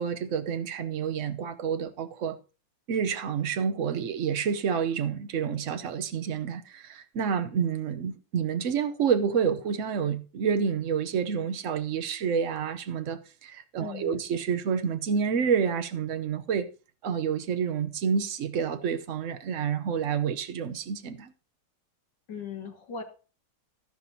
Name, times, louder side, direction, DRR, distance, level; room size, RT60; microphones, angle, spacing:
voice 1, 0.0-2.4 2.9-16.7 17.0-21.3, right 7 dB, 50° right, 1.0 m, -29 dB
voice 2, 13.8-14.2 22.3-23.0, left 6 dB, 70° left, 2.5 m, -38 dB
12.5 x 11.0 x 2.8 m
omnidirectional pair, 2.0 m